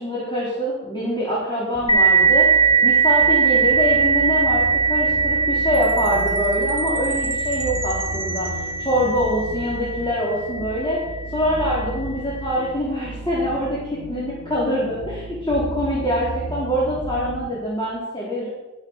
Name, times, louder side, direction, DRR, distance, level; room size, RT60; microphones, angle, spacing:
voice 1, 0.0-2.6 2.8-11.0 11.3-18.5, equal, 15° left, -7 dB, 3.7 m, -24 dB
sound 1, 1.7-17.5, right 2 dB, ahead, 3.6 m, -34 dB
sound 2, 1.9-11.1, right 5 dB, 60° left, 1.0 m, -20 dB
Chime, 5.7-9.5, right 5 dB, 90° right, 1.0 m, -37 dB
13.0 x 7.4 x 6.4 m, 1.1 s
wide cardioid pair, 65°, 31 cm